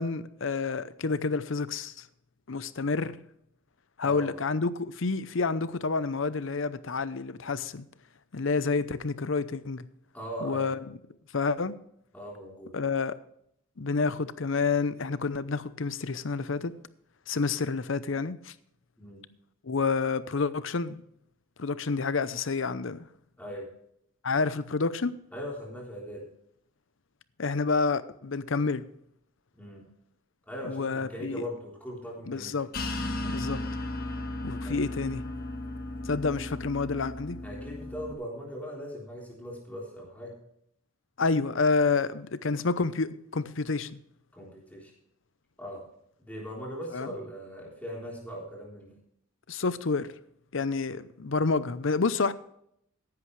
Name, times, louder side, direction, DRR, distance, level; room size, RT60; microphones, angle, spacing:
voice 1, 0.0-1.9 2.5-3.1 4.0-7.8 8.3-9.8 10.4-10.8 11.3-11.7 12.7-13.1 13.8-16.7 17.3-18.5 19.6-21.0 21.6-23.1 24.2-25.2 27.4-28.8 30.7-31.4 32.3-32.7 33.3-33.6 34.4-35.2 36.0-37.4 41.2-44.0 46.9-47.1 49.5-50.1 50.5-52.3, left 4 dB, 65° left, 0.7 m, -29 dB
voice 2, 4.0-4.3 10.1-10.7 12.1-12.8 19.0-19.2 23.4-23.7 25.3-26.3 29.5-29.9 30.5-32.5 33.2-33.4 34.6-34.8 37.4-40.4 44.3-44.9 45.6-45.9 46.2-49.0, equal, 5° left, 3.6 m, -40 dB
sound 1, 32.7-38.1, left 2 dB, 45° left, 1.4 m, -35 dB
14.5 x 11.0 x 3.2 m
head